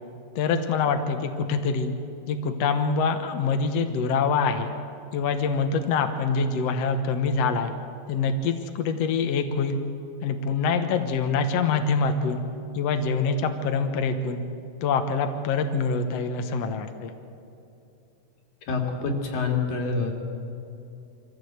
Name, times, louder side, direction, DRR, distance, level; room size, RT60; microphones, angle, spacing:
voice 1, 0.4-1.9 2.3-4.7 5.1-7.7 8.1-9.8 10.2-12.4 12.7-14.4 14.8-17.1, left 5 dB, 65° left, 6 dB, 1.8 m, -25 dB
voice 2, 18.7-20.1, left 4 dB, 80° left, 2 dB, 3.8 m, -26 dB
24.5 x 15.0 x 8.0 m, 2.7 s
omnidirectional pair, 4.0 m